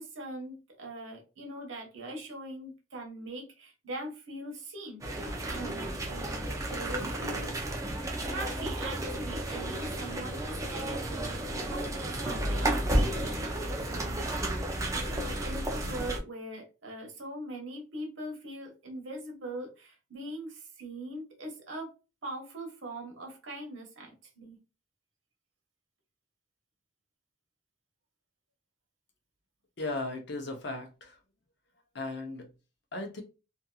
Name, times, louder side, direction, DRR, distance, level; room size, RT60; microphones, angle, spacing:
voice 1, 0.0-7.5 8.2-14.3 15.1-21.9 22.2-24.6, right 1 dB, 85° right, 1.1 m, -41 dB
sound 1, 5.0-16.2, right 1 dB, 15° right, 0.4 m, -32 dB
voice 2, 29.8-31.2 31.9-32.5 32.9-33.2, left 2 dB, 60° left, 0.7 m, -36 dB
2.8 x 2.5 x 2.3 m
head